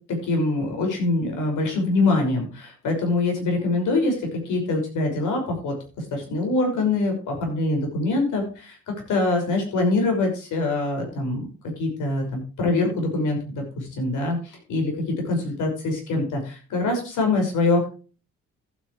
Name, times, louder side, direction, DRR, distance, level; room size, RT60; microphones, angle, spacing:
voice 1, 0.2-4.1 4.4-5.7 6.1-8.8 9.1-11.5 11.8-17.9, left 2 dB, 80° left, 3 dB, 5.8 m, -24 dB
14.5 x 9.1 x 3.2 m, 0.35 s
cardioid pair, 90°, 30 cm